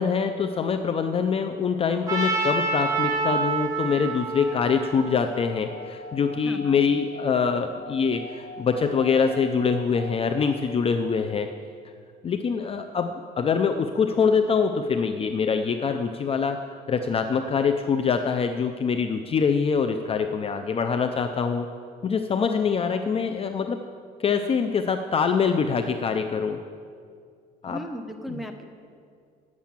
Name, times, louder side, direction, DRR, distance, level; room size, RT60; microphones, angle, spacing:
voice 1, 0.0-11.5 12.2-21.7 22.0-23.8 24.2-26.6 27.6-27.8 28.3-28.4, left 6 dB, 35° left, 7 dB, 0.5 m, -24 dB
Trumpet, 2.1-6.1, right 3 dB, 20° right, 2.8 m, -28 dB
Singing / Glass, 4.4-11.0, left 3 dB, 70° left, 1.4 m, -44 dB
voice 2, 6.4-6.8 27.6-28.6, equal, ahead, 4 dB, 1.0 m, -36 dB
9.5 x 7.5 x 7.2 m, 2.2 s
cardioid pair, 110°, 17 cm